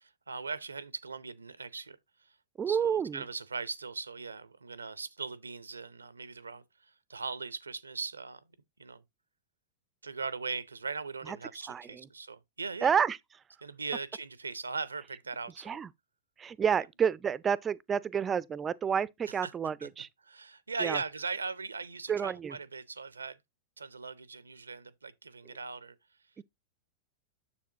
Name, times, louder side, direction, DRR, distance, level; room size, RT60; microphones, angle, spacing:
voice 1, 0.0-2.0 2.7-8.4 8.8-9.0 10.0-12.9 13.6-15.8 19.4-19.5 19.8-19.9 20.3-23.4 23.8-26.0, right 4 dB, 80° right, 0.5 m, -39 dB
voice 2, 2.6-3.2 11.3-11.4 11.7-12.1 12.8-13.2 15.6-15.9 16.4-20.1 20.8-21.0 22.1-22.6 26.4-26.5, right 7 dB, 20° right, 0.4 m, -30 dB
7.0 x 7.0 x 2.8 m
figure-of-eight pair, 95°, 0 cm